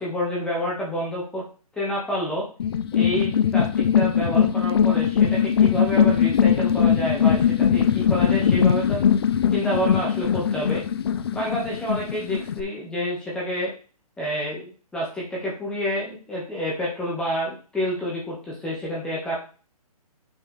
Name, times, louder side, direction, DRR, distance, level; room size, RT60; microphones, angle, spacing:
voice 1, 0.0-1.4 1.7-2.5 2.9-9.0 9.5-10.8 11.3-13.7 14.2-19.4, equal, 5° left, -5 dB, 1.4 m, -28 dB
sound 1, 2.6-12.6, left 8 dB, 40° left, 0.6 m, -21 dB
7.6 x 6.4 x 3.3 m, 0.37 s
hypercardioid pair, 160°, 20 cm